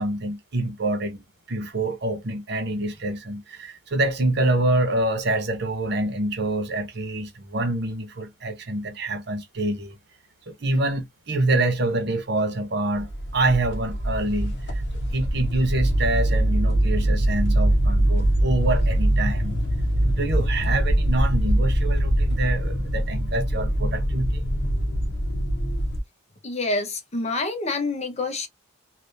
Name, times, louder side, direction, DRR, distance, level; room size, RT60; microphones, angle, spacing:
voice 1, 0.0-10.0 10.5-14.8 15.1-19.6 20.0-24.4, right 2 dB, 60° right, 0.9 m, -26 dB
sound 1, 12.9-26.0, right 1 dB, 60° left, 1.0 m, -23 dB
voice 2, 26.4-28.5, left 2 dB, 35° left, 0.8 m, -27 dB
3.4 x 2.4 x 2.6 m
head